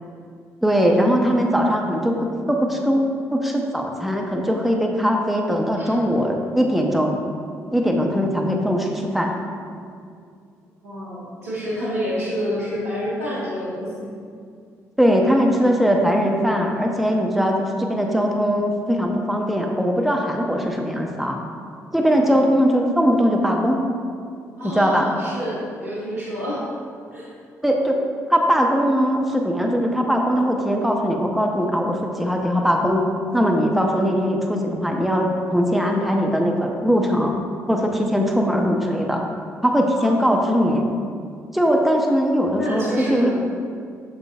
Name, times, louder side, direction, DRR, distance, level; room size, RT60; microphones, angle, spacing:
voice 1, 0.6-3.0 3.3-7.2 7.7-9.3 15.0-21.4 21.9-23.8 24.6-25.1 27.6-28.0 28.3-33.0 33.3-37.3 37.7-39.2 39.6-40.8 41.5-42.8 43.1-43.3, equal, ahead, 1 dB, 0.9 m, -20 dB
voice 2, 10.8-14.1 22.1-22.4 24.6-26.6 27.1-27.3 39.9-40.8 42.5-43.3, equal, 90° right, -8 dB, 1.6 m, -29 dB
7.7 x 6.7 x 2.5 m, 2.3 s
hypercardioid pair, 45°, 8 cm